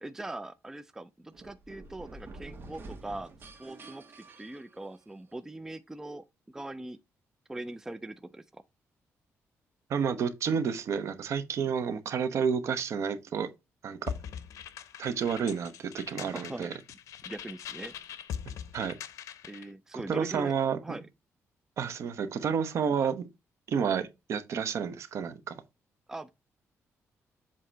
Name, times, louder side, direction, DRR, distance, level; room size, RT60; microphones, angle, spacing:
voice 1, 0.0-3.3 3.6-7.0 7.5-8.6 16.3-16.7 17.3-17.9 19.4-20.5 20.8-21.1 26.1-26.3, right 2 dB, 10° right, 0.4 m, -41 dB
sound 1, 1.3-5.3, right 2 dB, 45° right, 1.3 m, -48 dB
voice 2, 9.9-13.5 13.8-14.1 15.0-16.7 18.7-19.0 19.9-21.0 21.8-23.3 23.7-25.6, right 6 dB, 60° right, 0.9 m, -30 dB
sound 2, 14.1-19.7, left 8 dB, 85° left, 0.7 m, -42 dB
7.6 x 2.8 x 4.5 m
cardioid pair, 135°, 5 cm